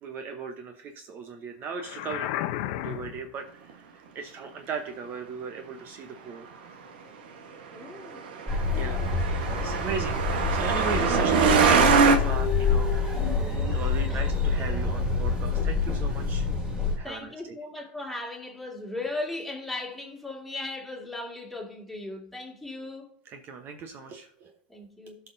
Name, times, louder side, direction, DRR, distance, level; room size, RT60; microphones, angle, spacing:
voice 1, 0.0-2.3 2.8-6.5 8.7-9.3 9.6-13.4 13.7-16.5 17.0-17.5 23.2-24.5, right 5 dB, 40° right, 0.9 m, -37 dB
sound 1, 1.7-3.3, left 13 dB, 65° left, 0.6 m, -33 dB
voice 2, 7.7-8.3 8.9-9.2 14.1-14.2 17.0-23.1 24.7-25.2, left 2 dB, ahead, 2.3 m, -37 dB
Truck, 8.0-12.2, right 5 dB, 80° right, 1.3 m, -23 dB
sound 2, 8.5-17.0, left 4 dB, 15° right, 3.0 m, -27 dB
16.0 x 5.7 x 2.7 m
supercardioid pair, 110°, 5 cm